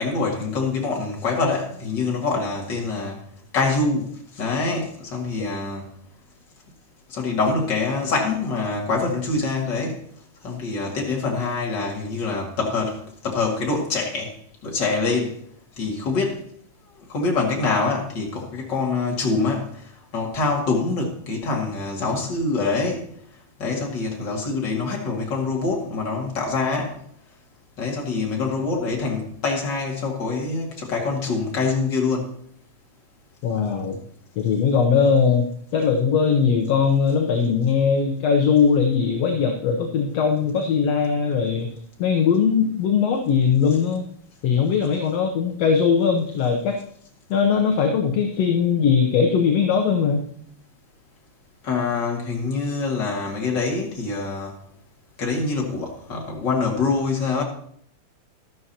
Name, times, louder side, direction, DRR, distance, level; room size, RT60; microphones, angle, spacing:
voice 1, 0.0-3.2 3.5-5.9 7.1-10.1 10.4-14.3 14.6-15.4 15.8-16.4 17.1-19.8 20.1-23.1 23.6-27.0 27.8-32.3 51.6-54.6 55.2-57.4, left 3 dB, 40° left, -1 dB, 2.7 m, -25 dB
voice 2, 33.4-34.0 34.4-41.7 42.0-44.0 44.4-46.8 47.3-50.2, left 6 dB, 65° left, 3 dB, 1.9 m, -20 dB
12.5 x 12.5 x 2.9 m, 0.63 s
omnidirectional pair, 3.4 m